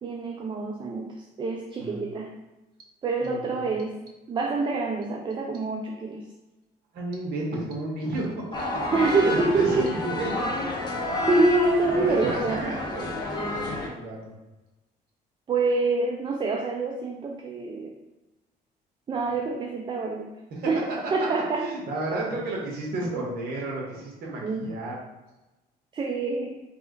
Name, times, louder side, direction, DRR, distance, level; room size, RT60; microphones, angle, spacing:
voice 1, 0.0-2.4 3.0-4.0 4.3-6.3 8.9-9.9 11.3-12.7 15.5-17.9 19.1-20.4 20.7-21.7 23.1-23.3 24.4-24.7 25.9-26.6, right 3 dB, 30° right, 2 dB, 0.4 m, -26 dB
voice 2, 3.2-3.6 6.9-8.4 8.7-10.6 11.9-14.3 20.5-21.3 21.6-25.0, right 2 dB, 70° right, -2 dB, 1.4 m, -32 dB
sound 1, 8.5-13.9, left 1 dB, 25° left, 1.2 m, -30 dB
3.6 x 3.2 x 3.8 m, 1.0 s
cardioid pair, 110°, 17 cm